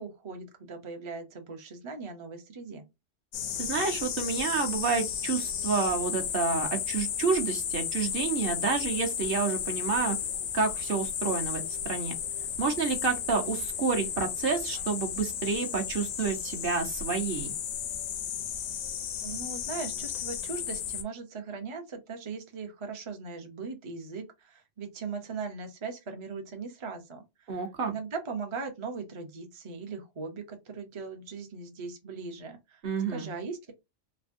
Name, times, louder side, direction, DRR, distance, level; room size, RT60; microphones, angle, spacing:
voice 1, 0.0-2.8 19.2-27.6 27.9-32.8 33.1-33.7, right 4 dB, 35° right, 0.5 m, -39 dB
sound 1, 3.3-21.0, left 9 dB, 90° left, 1.0 m, -34 dB
voice 2, 3.6-10.2 10.5-12.1 12.6-17.5 27.5-27.9 32.8-33.3, right 5 dB, 55° right, 0.9 m, -29 dB
3.4 x 2.1 x 2.5 m
omnidirectional pair, 1.3 m